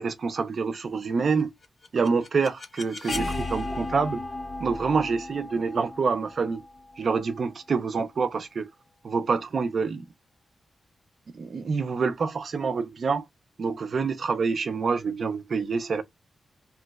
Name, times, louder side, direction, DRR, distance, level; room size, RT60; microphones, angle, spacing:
voice 1, 0.0-1.5 1.9-4.2 4.6-6.6 7.0-8.7 9.0-10.1 11.3-13.2 13.6-16.0, right 5 dB, 50° right, 0.4 m, -27 dB
sound 1, 1.6-7.5, left 2 dB, 40° left, 0.7 m, -35 dB
3.0 x 2.0 x 3.4 m
wide cardioid pair, 160°, 0 cm